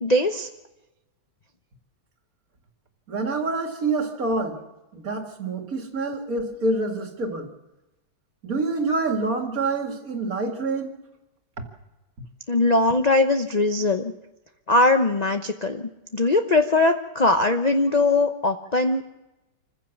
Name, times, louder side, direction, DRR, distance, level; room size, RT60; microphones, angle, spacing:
voice 1, 0.0-0.5 12.5-14.1 14.7-19.0, left 2 dB, 35° left, 6 dB, 0.6 m, -21 dB
voice 2, 3.1-4.6 4.9-7.5 8.4-11.0, right 3 dB, 50° right, 4 dB, 2.5 m, -26 dB
26.0 x 15.5 x 7.1 m, 1.0 s
omnidirectional pair, 1.9 m